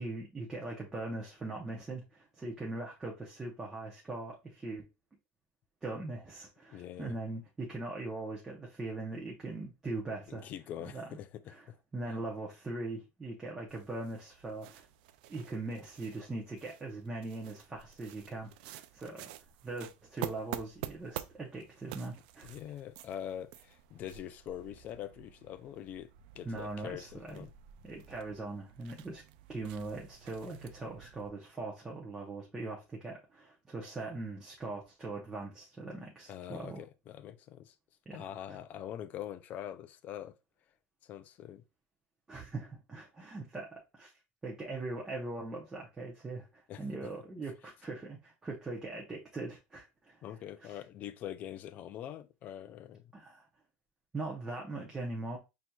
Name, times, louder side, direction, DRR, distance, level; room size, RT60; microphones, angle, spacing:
voice 1, 0.0-4.9 5.8-10.5 10.8-11.0 11.5-11.7 11.9-14.9 15.3-19.3 19.6-22.5 26.4-27.5 27.8-29.2 29.5-36.8 38.1-38.3 42.3-44.1 44.4-50.2 50.6-50.8 53.1-53.5 54.1-55.4, right 2 dB, 10° right, 0.8 m, -41 dB
voice 2, 6.7-7.2 10.3-11.8 22.4-26.1 26.3-27.5 36.3-37.7 38.1-40.3 41.0-41.6 46.7-46.8 50.2-53.1, left 10 dB, 35° left, 0.4 m, -44 dB
sound 1, 13.7-31.3, right 13 dB, 85° right, 0.4 m, -49 dB
6.0 x 2.7 x 2.3 m
cardioid pair, 170°, 5 cm